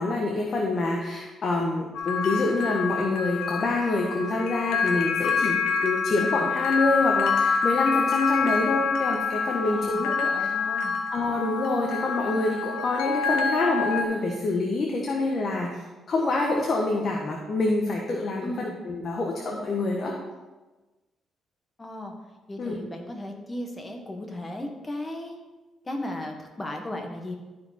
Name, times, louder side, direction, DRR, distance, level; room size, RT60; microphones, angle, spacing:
voice 1, 0.0-10.5 11.1-20.1 22.6-22.8, left 2 dB, 45° left, 0 dB, 1.2 m, -26 dB
sound 1, 1.9-14.0, left 5 dB, 90° left, 0.9 m, -27 dB
voice 2, 9.6-11.0 18.4-18.8 21.8-22.1 22.5-25.4 25.9-27.3, left 1 dB, 25° left, 3 dB, 1.5 m, -36 dB
12.5 x 4.8 x 4.3 m, 1.2 s
cardioid pair, 90°, 0 cm